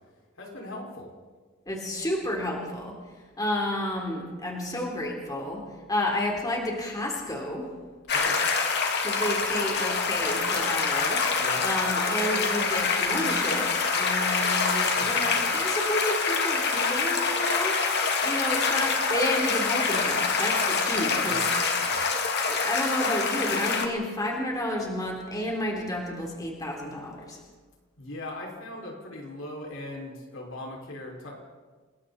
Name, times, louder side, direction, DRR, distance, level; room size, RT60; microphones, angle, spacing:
voice 1, 0.4-1.1 8.1-8.4 11.4-11.7 14.9-15.5 21.2-21.5 21.8-22.2 28.0-31.3, left 1 dB, 75° left, -1 dB, 5.8 m, -39 dB
voice 2, 1.7-3.0 3.4-5.6 5.9-7.7 9.0-13.7 14.0-21.4 22.5-27.4, left 1 dB, 20° left, -1 dB, 3.7 m, -31 dB
sound 1, 8.1-23.9, left 4 dB, 55° left, 2.4 m, -26 dB
29.5 x 20.5 x 4.3 m, 1.4 s
head